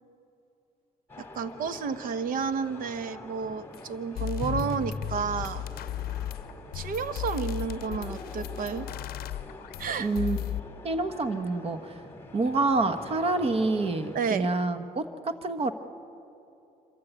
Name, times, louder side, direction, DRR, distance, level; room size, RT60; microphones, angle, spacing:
sound 1, 1.1-14.4, left 2 dB, 15° left, 2.1 m, -43 dB
voice 1, 1.2-5.6 6.7-8.9 9.8-10.1 14.1-14.5, right 6 dB, 55° right, 13 dB, 0.9 m, -31 dB
sound 2, 3.7-3.8 4.2-10.6, left 12 dB, 65° left, 0.7 m, -35 dB
voice 2, 10.0-10.4 10.8-12.0 12.3-15.7, right 3 dB, 35° right, 9 dB, 1.2 m, -27 dB
26.5 x 13.5 x 8.2 m, 2.9 s
cardioid pair, 110°, 17 cm